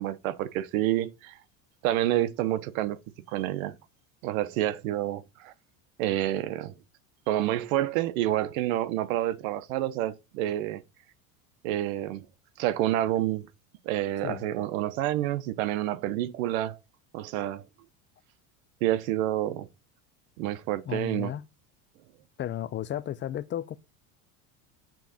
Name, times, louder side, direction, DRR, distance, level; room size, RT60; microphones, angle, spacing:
voice 1, 0.0-1.4 1.8-3.0 3.3-3.8 4.2-5.5 6.0-6.7 7.3-10.8 11.6-12.3 12.6-13.5 13.8-16.8 17.1-17.6 18.8-19.7 20.4-21.3, right 13 dB, 80° right, 1.2 m, -28 dB
voice 2, 20.9-21.5 22.4-23.8, left 11 dB, 30° left, 0.5 m, -33 dB
9.2 x 3.8 x 7.1 m
supercardioid pair, 135°, 41 cm